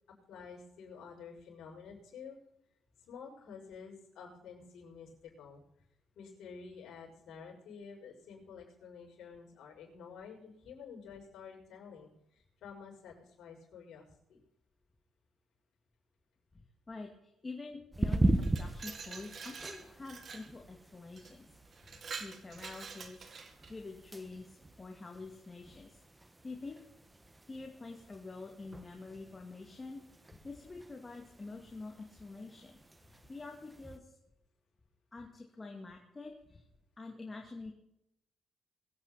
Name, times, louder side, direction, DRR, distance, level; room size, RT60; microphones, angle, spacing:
voice 1, 0.3-2.4 3.0-5.6 6.1-14.4, left 6 dB, 75° left, -2 dB, 6.3 m, -50 dB
voice 2, 16.9-23.4 23.7-26.0 26.4-26.8 27.4-30.0 30.4-34.2 35.1-36.6 37.0-37.7, left 3 dB, 25° left, 1 dB, 2.4 m, -47 dB
sound 1, 17.9-34.0, right 1 dB, 15° right, 1.5 m, -39 dB
Glass, 18.2-20.5 21.2-21.3 21.7-23.7, right 5 dB, 50° right, 1.9 m, -46 dB
23.0 x 9.0 x 4.3 m, 0.81 s
cardioid pair, 90°, 0 cm